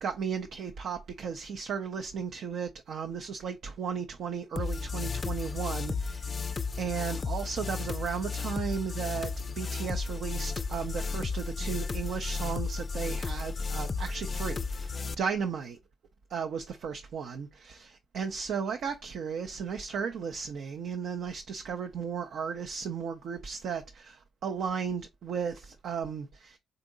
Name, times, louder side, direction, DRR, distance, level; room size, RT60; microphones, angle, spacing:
voice 1, 0.0-15.8 16.3-26.6, right 6 dB, 65° right, 0.5 m, -35 dB
sound 1, 4.6-15.1, left 4 dB, 40° left, 0.3 m, -33 dB
3.9 x 3.5 x 3.8 m
hypercardioid pair, 40°, 0 cm